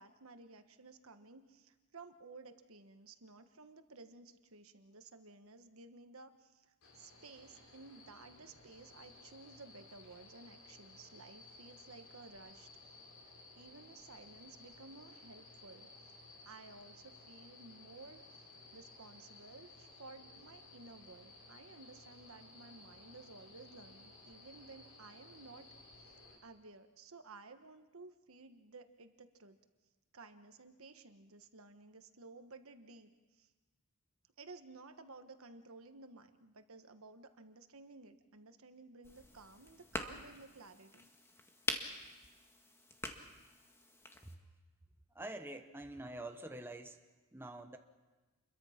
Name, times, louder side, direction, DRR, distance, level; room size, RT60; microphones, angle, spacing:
voice 1, 0.0-12.7 13.6-16.2 16.4-18.5 18.7-25.7 26.0-26.1 26.4-29.6 30.1-33.5 34.4-41.1, right 3 dB, 70° right, 8 dB, 1.4 m, -55 dB
sound 1, 6.8-26.4, left 2 dB, 70° left, 6.9 m, -58 dB
sound 2, 39.0-44.4, left 1 dB, 10° left, 1.7 m, -45 dB
voice 2, 45.1-47.0 47.3-47.8, right 1 dB, 10° right, 5 dB, 1.1 m, -46 dB
28.0 x 22.5 x 5.9 m, 1.2 s
head